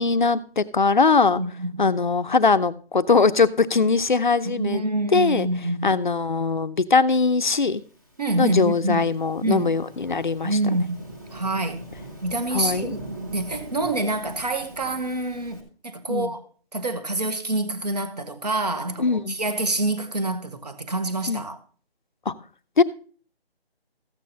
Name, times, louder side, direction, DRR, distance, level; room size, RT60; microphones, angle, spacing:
voice 1, 0.0-1.4 1.8-4.8 5.1-5.5 5.8-7.8 8.4-10.6 12.5-12.9 16.1-16.3 19.0-19.4 21.3-21.4 22.3-22.4 22.8-22.9, left 4 dB, 50° left, 0.6 m, -21 dB
voice 2, 1.4-1.9 4.4-6.0 8.2-9.1 9.4-9.7 10.4-11.9 12.2-13.0 13.3-16.4 16.7-21.6, right 2 dB, 40° right, 1.1 m, -27 dB
Thunderstorm / Rain, 7.9-15.6, right 1 dB, 20° right, 1.2 m, -41 dB
14.0 x 8.4 x 2.7 m
figure-of-eight pair, 175°, 31 cm